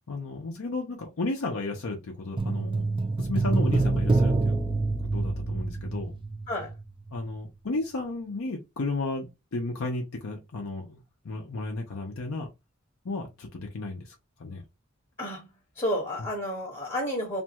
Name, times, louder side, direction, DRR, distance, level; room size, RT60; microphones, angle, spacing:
voice 1, 0.1-2.9 3.2-4.6 5.0-6.2 7.1-12.5 13.0-14.6, left 2 dB, 65° left, 0.6 m, -33 dB
sound 1, 2.4-6.8 7.1-7.2, right 3 dB, 20° right, 0.3 m, -26 dB
voice 2, 15.8-17.4, equal, 25° left, 0.8 m, -31 dB
2.5 x 2.2 x 2.8 m
head